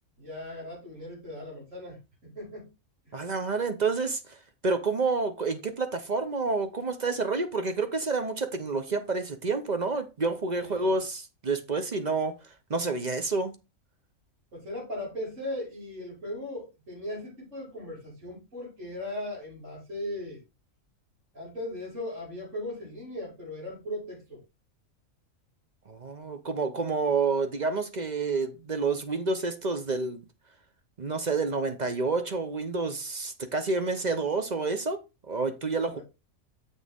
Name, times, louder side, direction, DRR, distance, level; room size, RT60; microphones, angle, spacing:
voice 1, 0.2-2.7 3.0-3.1 10.6-11.0 14.5-20.4 21.3-24.4 35.8-36.0, left 1 dB, 65° right, 5.8 m, -38 dB
voice 2, 3.1-13.6 25.9-30.2 31.0-36.0, right 4 dB, 40° right, 0.8 m, -29 dB
7.3 x 6.2 x 3.5 m
omnidirectional pair, 1.4 m